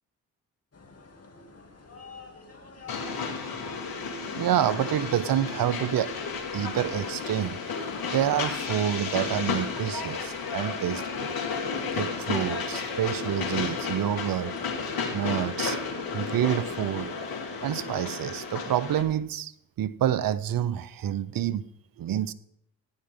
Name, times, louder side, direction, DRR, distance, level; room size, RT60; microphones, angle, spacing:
sound 1, 0.7-18.4, left 3 dB, 40° left, 2.8 m, -50 dB
Train, 2.9-19.0, left 5 dB, 70° left, 2.4 m, -32 dB
voice 1, 4.2-6.1 6.5-7.6 8.1-11.3 11.9-14.5 14.9-17.1 17.6-19.5 19.8-21.6 22.0-22.3, right 11 dB, 60° right, 0.8 m, -28 dB
15.5 x 9.7 x 3.8 m
hypercardioid pair, 45°, 38 cm